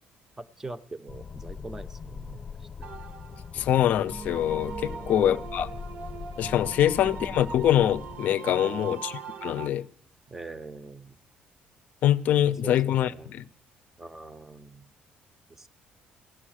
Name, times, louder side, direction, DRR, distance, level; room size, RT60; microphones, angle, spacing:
voice 1, 0.4-2.9 3.6-3.7 4.9-5.5 6.8-7.3 8.6-9.0 10.3-11.2 12.6-13.3 14.0-14.9 15.5-15.7, right 3 dB, 10° right, 0.6 m, -43 dB
sound 1, 1.1-8.2, left 6 dB, 30° left, 0.8 m, -41 dB
sound 2, 2.8-9.7, right 6 dB, 50° right, 0.8 m, -40 dB
voice 2, 3.5-5.7 6.4-9.1 9.4-9.9 12.0-13.5, left 11 dB, 55° left, 0.5 m, -24 dB
16.0 x 11.0 x 6.3 m
cardioid pair, 160°, 3 cm